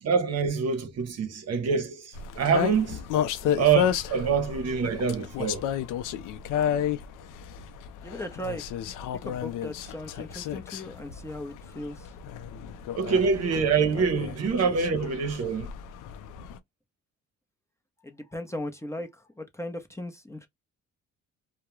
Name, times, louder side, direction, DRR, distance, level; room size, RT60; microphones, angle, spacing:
voice 1, 0.0-3.0 3.6-5.6 13.0-15.7, right 6 dB, 55° right, 0.7 m, -25 dB
sound 1, 2.1-16.6, left 9 dB, 90° left, 0.5 m, -32 dB
voice 2, 8.0-8.6 9.2-12.1 18.0-20.5, left 1 dB, 10° left, 0.6 m, -37 dB
2.3 x 2.1 x 2.9 m
cardioid pair, 90°, 30 cm